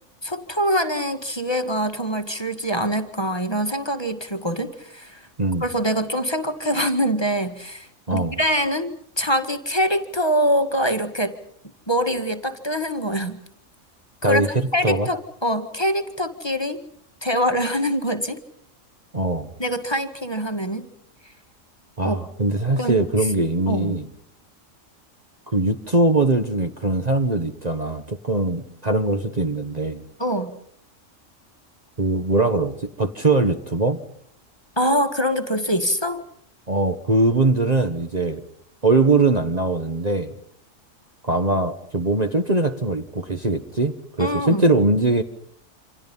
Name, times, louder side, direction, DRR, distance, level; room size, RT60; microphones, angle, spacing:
voice 1, 0.2-5.2 5.6-11.3 11.9-13.4 14.2-16.8 17.2-18.4 19.6-20.9 22.0-22.2 22.7-23.3 23.7-24.0 30.2-30.5 34.8-36.2 44.2-44.6, equal, 20° left, 7 dB, 1.9 m, -24 dB
voice 2, 8.1-8.4 14.2-15.1 19.1-19.5 22.0-24.1 25.5-30.0 32.0-34.0 36.7-38.4 38.8-40.3 41.2-45.2, right 2 dB, 35° right, 8 dB, 1.4 m, -21 dB
28.5 x 26.5 x 5.6 m, 0.65 s
omnidirectional pair, 1.3 m